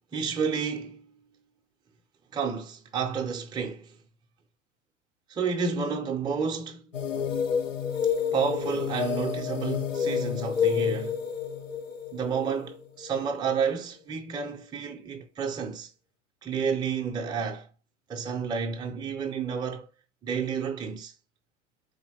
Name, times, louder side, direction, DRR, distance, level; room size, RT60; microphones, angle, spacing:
voice 1, 0.1-1.1 2.3-3.9 5.3-6.9 8.3-11.2 12.1-15.9 16.4-17.7 18.1-19.9 20.2-21.1, right 6 dB, 10° right, 0.6 m, -30 dB
sound 1, 6.9-13.4, left 7 dB, 75° left, 0.8 m, -29 dB
4.4 x 3.2 x 2.8 m
figure-of-eight pair, 90°, 38 cm